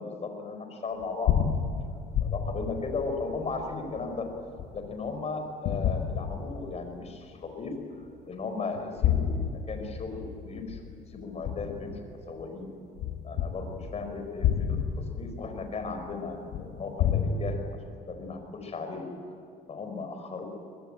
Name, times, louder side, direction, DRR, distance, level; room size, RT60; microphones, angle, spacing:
voice 1, 0.0-1.4 1.8-4.3 4.7-7.7 8.3-10.8 11.1-12.0 12.3-12.7 13.2-14.8 15.2-17.7 18.1-19.1 19.7-20.5, left 4 dB, 40° left, 5 dB, 4.9 m, -36 dB
sound 1, 1.0-5.1 5.7-7.0 7.5-7.6 8.7-12.4 13.0-17.2, left 8 dB, 80° left, 2.1 m, -30 dB
24.0 x 20.5 x 9.0 m, 2.4 s
cardioid pair, 110°, 17 cm